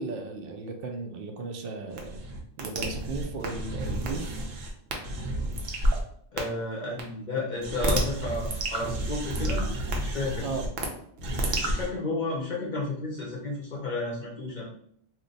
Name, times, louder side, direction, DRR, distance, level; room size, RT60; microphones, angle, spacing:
voice 1, 0.0-2.2 2.6-4.3 10.4-10.7, right 3 dB, 60° right, 4 dB, 0.6 m, -35 dB
sound 1, 1.9-6.0 6.4-6.5 7.0-7.1 7.6-10.9 11.2-11.9, right 1 dB, 85° right, 1.0 m, -30 dB
voice 2, 6.3-9.7 10.0-10.5 11.6-14.7, left 2 dB, 50° left, -4 dB, 0.6 m, -32 dB
2.9 x 2.1 x 3.8 m, 0.65 s
omnidirectional pair, 1.3 m